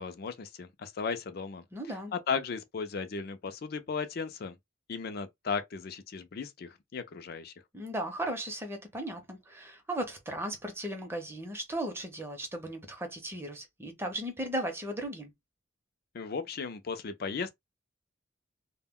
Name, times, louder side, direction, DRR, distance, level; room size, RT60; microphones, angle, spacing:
voice 1, 0.0-1.6 2.1-4.6 4.9-7.5 16.1-17.5, left 5 dB, 50° left, 0.4 m, -36 dB
voice 2, 1.7-2.1 7.7-15.3, right 1 dB, 15° right, 0.6 m, -36 dB
2.1 x 2.1 x 3.5 m
head